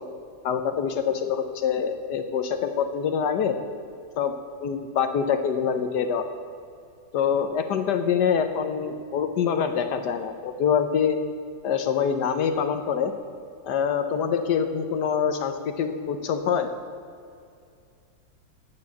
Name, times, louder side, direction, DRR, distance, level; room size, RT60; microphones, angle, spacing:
voice 1, 0.4-3.6 4.2-4.3 4.6-6.2 7.1-11.2 11.6-13.1 13.6-16.7, left 7 dB, 70° left, 8 dB, 1.3 m, -25 dB
9.8 x 8.5 x 8.2 m, 2.4 s
omnidirectional pair, 2.0 m